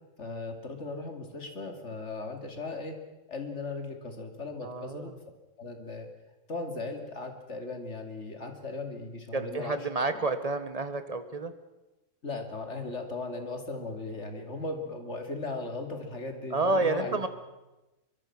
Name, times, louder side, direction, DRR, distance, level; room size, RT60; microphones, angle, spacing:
voice 1, 0.2-3.0 3.3-5.1 5.6-6.1 6.5-9.8 12.2-17.2, left 3 dB, 65° left, 5 dB, 3.1 m, -37 dB
voice 2, 4.6-5.1 9.3-11.5 16.5-17.3, right 3 dB, 30° right, 10 dB, 1.6 m, -29 dB
24.0 x 23.5 x 6.1 m, 1.0 s
omnidirectional pair, 1.3 m